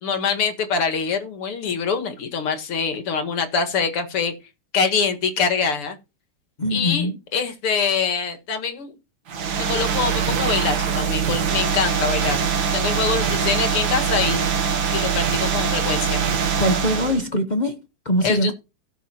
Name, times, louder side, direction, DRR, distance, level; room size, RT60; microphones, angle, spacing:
voice 1, 0.0-4.3 4.7-6.0 6.7-8.9 9.6-12.4 12.7-14.4 14.9-16.2 18.2-18.5, left 5 dB, 85° left, 2.7 m, -24 dB
voice 2, 6.6-7.1 16.6-17.8 18.0-18.5, equal, 50° left, 0.5 m, -22 dB
sound 1, 9.3-17.2, right 7 dB, 65° right, 2.2 m, -23 dB
16.5 x 7.2 x 2.9 m
omnidirectional pair, 2.4 m